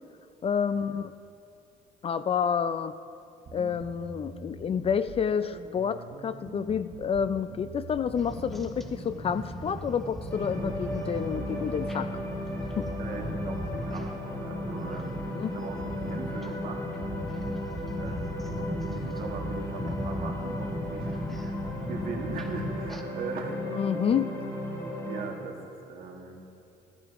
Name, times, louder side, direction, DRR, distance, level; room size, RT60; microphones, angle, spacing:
voice 1, 0.4-1.2 2.0-2.9 3.5-12.1 12.8-12.9 15.3-15.6 23.7-24.4, left 7 dB, 35° left, 13 dB, 0.4 m, -29 dB
sound 1, 3.5-10.8, right 5 dB, 35° right, 0.8 m, -45 dB
sound 2, 8.1-23.0, equal, ahead, 1.0 m, -38 dB
sound 3, 10.3-25.3, left 1 dB, 15° left, 3.0 m, -35 dB
voice 2, 13.0-15.2 15.5-16.9 18.0-21.3 21.8-23.6 24.7-26.4, right 4 dB, 60° right, 0 dB, 1.9 m, -40 dB
17.0 x 14.0 x 3.0 m, 2.6 s
cardioid pair, 110°, 17 cm